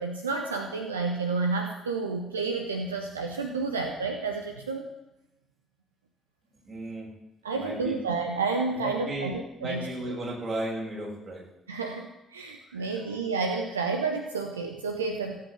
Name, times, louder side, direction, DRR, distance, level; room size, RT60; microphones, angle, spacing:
voice 1, 0.0-4.9 7.4-10.1 11.7-15.4, right 4 dB, 80° right, 4 dB, 0.9 m, -30 dB
voice 2, 6.6-7.1 7.5-8.0 8.7-9.3 9.6-11.4 12.7-13.2, right 1 dB, 40° right, -3 dB, 7.3 m, -35 dB
16.5 x 8.7 x 8.2 m, 0.93 s
figure-of-eight pair, 45°, 0 cm